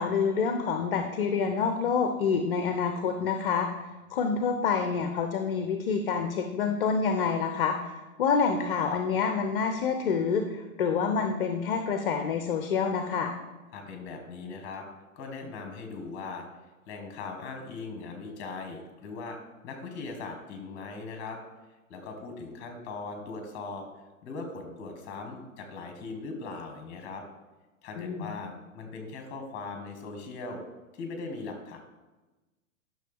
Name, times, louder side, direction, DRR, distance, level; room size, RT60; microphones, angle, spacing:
voice 1, 0.0-13.3 28.0-28.3, left 5 dB, 40° left, 6 dB, 0.7 m, -27 dB
voice 2, 13.7-14.8 15.1-16.5 16.9-19.4 19.6-21.4 21.9-23.8 24.2-27.2 27.8-30.6 30.9-31.8, left 3 dB, 25° left, 5 dB, 1.6 m, -39 dB
10.5 x 6.3 x 3.4 m, 1.2 s
figure-of-eight pair, 115°, 43 cm